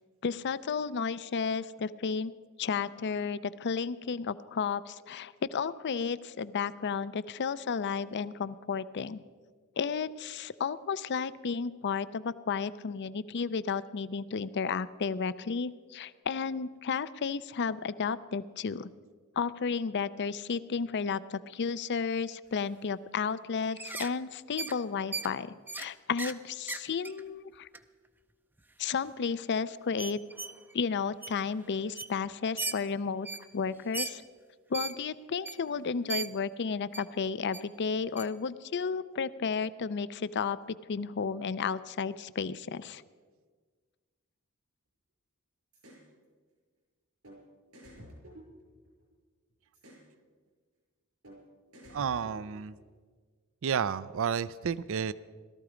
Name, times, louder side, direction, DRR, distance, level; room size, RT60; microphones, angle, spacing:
voice 1, 0.2-2.3 2.6-9.2 9.8-18.9 19.4-27.7 28.8-30.2 30.7-33.3 33.5-34.2 34.7-43.0, left 5 dB, 55° left, 16 dB, 0.5 m, -33 dB
sound 1, 23.6-24.1 24.6-24.8 25.1-25.3 25.7-25.9 26.2-26.4 26.7-27.2 27.7-27.8 28.6-28.7 29.1-29.2 30.0-30.7 31.2-31.3 31.6-31.7 31.9-32.1 32.6-32.8 33.2-33.5 33.9-34.1 34.7-34.9 35.4-35.6 36.1-36.3 36.9-37.0 37.5-37.6 38.2-38.3, right 4 dB, 10° right, 0.5 m, -37 dB
sound 2, 45.7-46.0 47.2-47.4 47.7-49.1 49.7-50.1 51.2-51.4 51.7-52.8, equal, 80° right, 5.6 m, -51 dB
voice 2, 51.9-52.8 53.6-55.1, right 7 dB, 65° right, 18 dB, 0.4 m, -31 dB
17.5 x 13.0 x 5.0 m, 1.5 s
head